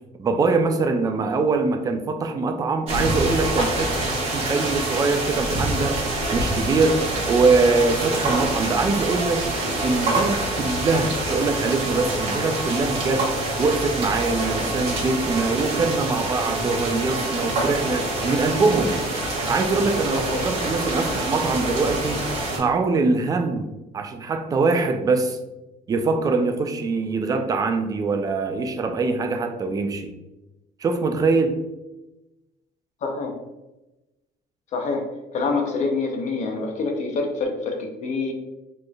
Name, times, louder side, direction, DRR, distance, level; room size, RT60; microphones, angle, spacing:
voice 1, 0.2-6.0 6.3-7.0 7.3-9.5 9.8-13.3 13.6-19.0 19.5-22.2 22.6-25.4 25.9-30.1 30.8-31.5, right 3 dB, 20° right, 6 dB, 0.3 m, -23 dB
sound 1, 2.9-22.6, right 2 dB, 40° right, 1.2 m, -26 dB
voice 2, 20.1-20.4 33.0-33.3 34.7-35.1 35.3-38.3, left 3 dB, 45° left, 3 dB, 0.7 m, -26 dB
4.1 x 3.1 x 2.3 m, 1.0 s
cardioid pair, 145°, 16 cm